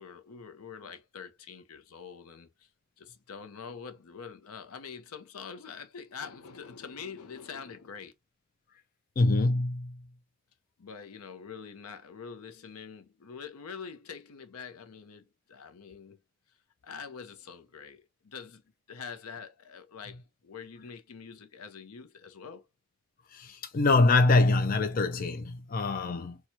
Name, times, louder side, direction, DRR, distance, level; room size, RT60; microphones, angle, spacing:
voice 1, 0.0-2.7 3.0-8.1 10.8-16.2 16.8-18.6 18.9-22.6, left 6 dB, 85° left, 0.6 m, -45 dB
voice 2, 9.2-10.0 23.3-26.4, left 3 dB, 40° left, 0.4 m, -24 dB
4.4 x 2.3 x 2.6 m
head